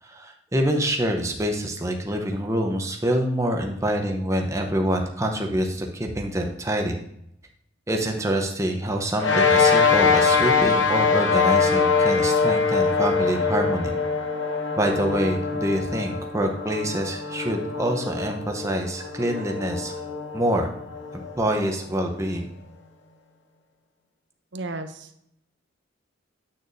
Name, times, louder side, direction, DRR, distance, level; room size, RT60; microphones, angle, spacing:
voice 1, 0.0-7.0 7.9-13.9 14.8-20.0 20.3-20.7 21.1-22.5, right 1 dB, 15° right, 2 dB, 0.8 m, -26 dB
sound 1, 9.2-21.9, left 5 dB, 60° left, 0.8 m, -23 dB
voice 2, 24.5-25.3, right 2 dB, 60° right, 8 dB, 0.7 m, -34 dB
8.8 x 6.4 x 2.7 m, 0.73 s
head